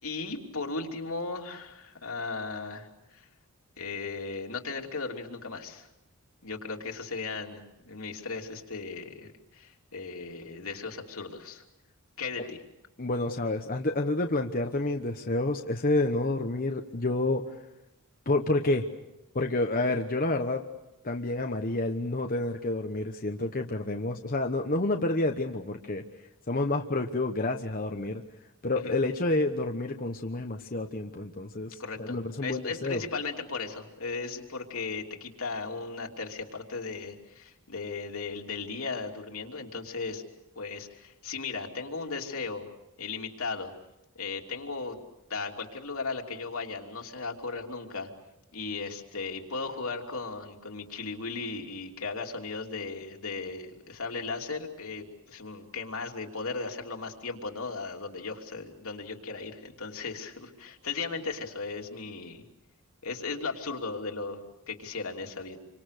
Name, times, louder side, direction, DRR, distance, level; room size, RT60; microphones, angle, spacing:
voice 1, 0.0-3.3 3.8-5.9 6.4-11.6 12.2-12.6 28.7-29.0 31.8-40.2 40.5-42.7 43.0-43.7 44.1-45.0 45.3-48.1 48.5-62.4 63.0-65.6, left 4 dB, 75° left, 2 dB, 3.1 m, -36 dB
voice 2, 13.0-17.4 18.3-18.9 19.3-20.6 21.0-26.0 26.5-28.2 28.6-33.0, left 2 dB, 40° left, 3 dB, 1.1 m, -29 dB
29.0 x 25.0 x 6.7 m, 0.90 s
head